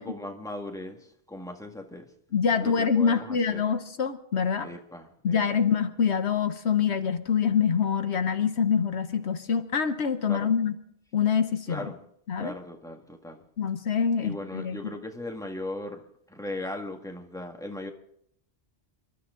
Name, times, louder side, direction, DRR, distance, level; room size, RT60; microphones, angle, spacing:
voice 1, 0.0-2.1 2.6-3.6 4.6-5.4 10.3-10.5 11.7-12.0 12.4-13.4 14.2-16.0 16.3-17.9, left 1 dB, 5° left, 2 dB, 1.8 m, -38 dB
voice 2, 2.3-4.7 5.2-10.7 11.1-11.8 12.3-12.5 13.6-14.9, left 6 dB, 70° left, 9 dB, 1.2 m, -25 dB
28.5 x 13.0 x 3.8 m, 0.72 s
omnidirectional pair, 1.2 m